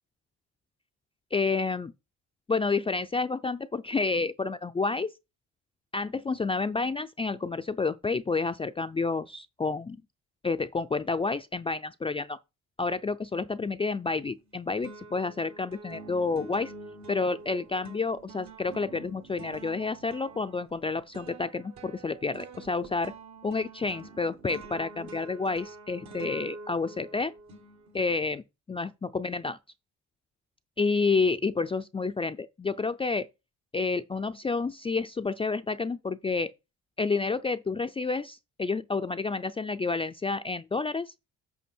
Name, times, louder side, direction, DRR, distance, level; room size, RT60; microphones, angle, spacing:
voice 1, 1.3-1.9 2.5-5.1 5.9-10.0 10.4-12.4 12.8-16.7 17.1-23.1 23.4-27.3 27.9-28.4 28.7-29.6 30.8-33.3 33.7-36.5 37.0-41.1, left 4 dB, 20° left, 0.4 m, -29 dB
sound 1, 14.0-14.5 14.8-28.2, right 3 dB, 65° right, 1.6 m, -47 dB
8.3 x 5.5 x 4.4 m
cardioid pair, 90°, 30 cm